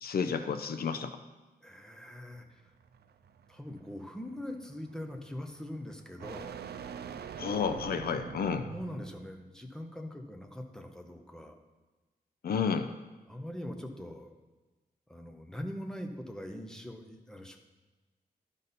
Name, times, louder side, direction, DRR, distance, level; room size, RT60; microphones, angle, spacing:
voice 1, 0.0-1.2 7.4-8.7 12.4-12.9, left 6 dB, 70° left, 8 dB, 0.5 m, -31 dB
voice 2, 1.6-2.7 3.5-6.6 8.7-11.6 13.3-14.3 15.1-17.6, left 1 dB, 5° left, 4 dB, 0.8 m, -42 dB
sound 1, 2.3-9.4, right 7 dB, 90° right, 0.4 m, -46 dB
11.5 x 5.4 x 4.1 m, 1.2 s
wide cardioid pair, 130°, 16 cm